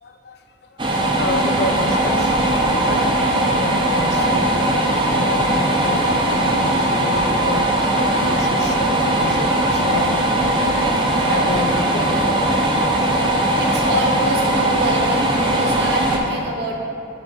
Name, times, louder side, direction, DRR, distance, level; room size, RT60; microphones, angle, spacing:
voice 1, 0.0-3.3 3.6-4.6 5.1-7.7 8.3-10.3 11.3-12.4, left 3 dB, 60° left, 6 dB, 0.4 m, -30 dB
sound 1, 0.8-16.2, right 1 dB, 25° right, 0.6 m, -19 dB
voice 2, 10.7-11.8 12.0-12.4 12.6-16.8, right 1 dB, 65° right, 0 dB, 0.8 m, -28 dB
6.8 x 4.4 x 4.2 m, 2.7 s
head